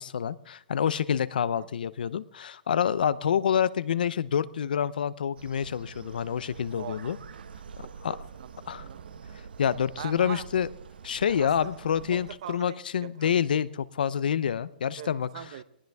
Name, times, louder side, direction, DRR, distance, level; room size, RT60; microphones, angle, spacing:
voice 1, 0.0-7.2 8.0-8.2 8.7-8.9 9.6-10.7 11.0-15.3, left 8 dB, 70° left, 18 dB, 0.7 m, -27 dB
sound 1, 5.4-12.4, right 6 dB, 90° right, 1.0 m, -46 dB
voice 2, 6.8-7.5 7.8-8.5 8.8-9.1 10.0-10.5 11.3-11.7 12.1-13.4 15.0-15.6, right 10 dB, 40° right, 14 dB, 0.9 m, -43 dB
20.0 x 18.5 x 3.5 m, 0.80 s
hypercardioid pair, 175°, 5 cm